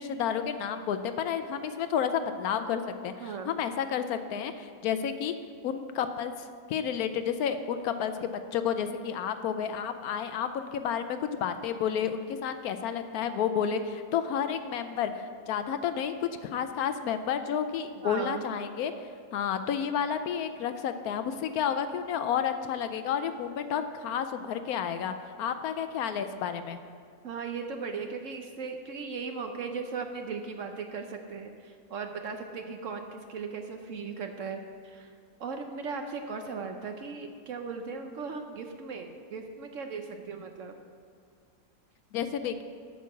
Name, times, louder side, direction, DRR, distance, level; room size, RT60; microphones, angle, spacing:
voice 1, 0.0-5.3 5.6-6.3 6.7-16.1 16.4-18.9 19.3-26.8 42.1-42.6, left 8 dB, 75° left, 9 dB, 1.0 m, -31 dB
voice 2, 3.2-3.5 18.0-18.4 27.2-35.1 35.4-40.7, right 5 dB, 60° right, 5 dB, 0.9 m, -37 dB
8.3 x 6.2 x 7.1 m, 2.2 s
omnidirectional pair, 1.7 m